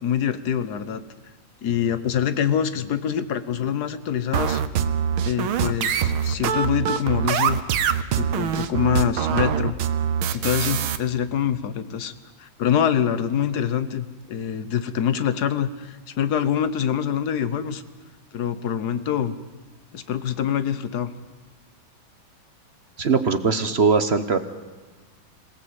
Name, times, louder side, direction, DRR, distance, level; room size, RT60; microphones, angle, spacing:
voice 1, 0.0-1.0 1.6-4.6 5.2-7.6 8.2-9.8 10.3-17.8 18.3-19.3 19.9-21.1, left 9 dB, 55° left, 13 dB, 1.5 m, -25 dB
sound 1, 4.3-11.0, right 8 dB, 90° right, 1.9 m, -23 dB
voice 2, 23.0-24.4, right 5 dB, 40° right, 10 dB, 1.0 m, -20 dB
26.5 x 18.0 x 8.2 m, 1.4 s
omnidirectional pair, 2.2 m